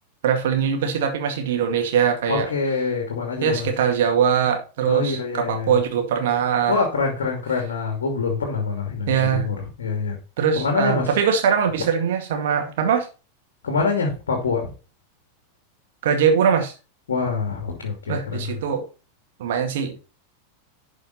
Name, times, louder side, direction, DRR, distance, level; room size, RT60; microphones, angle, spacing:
voice 1, 0.2-2.5 3.4-6.8 9.1-9.5 10.4-13.1 16.0-16.7 18.1-18.8 19.4-19.9, right 7 dB, 55° right, 2.1 m, -21 dB
voice 2, 2.3-3.7 4.8-5.8 6.7-10.2 10.6-11.1 13.6-14.7 17.1-18.2 18.5-18.6, left 4 dB, 65° left, 2.5 m, -25 dB
12.0 x 5.3 x 4.1 m
figure-of-eight pair, 90°, 0 cm